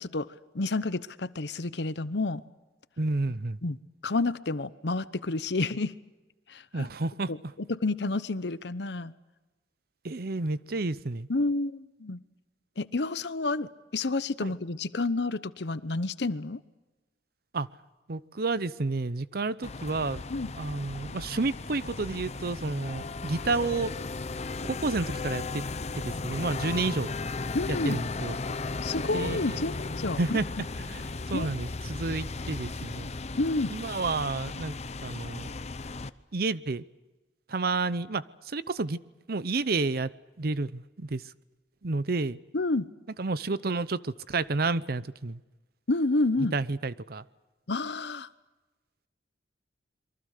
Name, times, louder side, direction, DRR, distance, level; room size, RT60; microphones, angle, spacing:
voice 1, 0.0-2.4 3.6-3.8 4.0-6.0 6.5-6.9 7.3-9.1 11.3-12.2 12.8-16.6 20.3-20.5 27.5-28.0 28.8-30.4 31.3-31.5 33.4-33.8 42.5-42.9 45.9-46.5 47.7-48.3, left 2 dB, 75° left, 15 dB, 0.9 m, -30 dB
voice 2, 3.0-3.6 6.7-7.3 10.0-11.3 14.4-14.5 17.5-17.7 18.1-20.2 20.6-23.9 24.6-25.6 26.0-27.1 27.7-28.4 29.1-29.7 30.2-30.4 30.8-33.1 33.7-34.7 35.0-35.5 36.3-36.8 37.5-39.0 39.3-40.1 40.4-41.2 41.8-42.4 43.2-45.4 46.5-47.2, right 3 dB, 60° right, 17 dB, 0.8 m, -30 dB
sound 1, 19.6-36.1, left 3 dB, 40° left, 0.8 m, -36 dB
27.5 x 23.5 x 6.7 m, 1.1 s
head